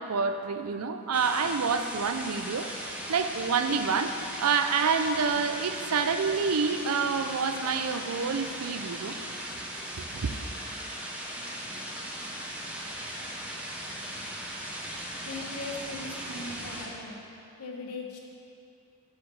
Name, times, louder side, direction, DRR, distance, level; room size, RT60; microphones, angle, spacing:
voice 1, 0.0-2.7 3.1-4.1 4.4-9.2 10.0-10.3, right 5 dB, 75° right, 8 dB, 0.5 m, -28 dB
sound 1, 1.1-16.9, equal, 5° right, 0.9 m, -38 dB
voice 2, 15.2-17.2 17.6-18.2, left 2 dB, 85° left, -1 dB, 1.3 m, -39 dB
8.1 x 4.9 x 7.2 m, 2.6 s
head